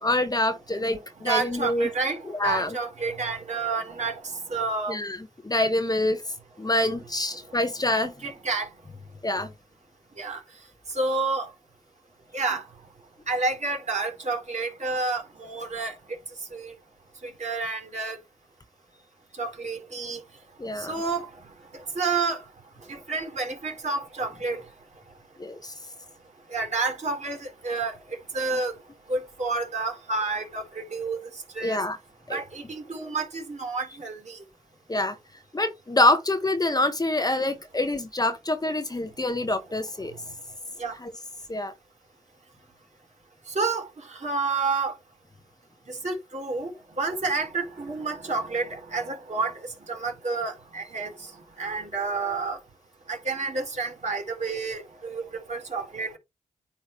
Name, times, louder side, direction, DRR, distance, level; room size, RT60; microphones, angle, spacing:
voice 1, 0.0-1.9 2.3-2.8 4.9-6.2 6.6-8.1 9.2-9.5 20.6-20.9 25.4-25.7 31.6-32.0 32.3-32.4 34.9-35.2 35.5-40.1 41.0-41.1 41.5-41.7, left 1 dB, 25° left, 1.3 m, -26 dB
voice 2, 1.2-5.0 8.2-8.7 10.2-10.4 10.9-11.5 12.3-12.6 13.3-16.2 16.5-16.7 17.2-18.2 19.4-20.2 20.8-21.3 21.7-22.4 22.9-24.6 26.5-28.7 29.1-31.8 32.3-34.4 40.1-40.2 40.8-41.0 43.5-44.9 45.9-51.3 51.6-52.6 53.1-56.2, right 3 dB, 50° right, 4.2 m, -30 dB
9.7 x 3.4 x 3.2 m
supercardioid pair, 45°, 15 cm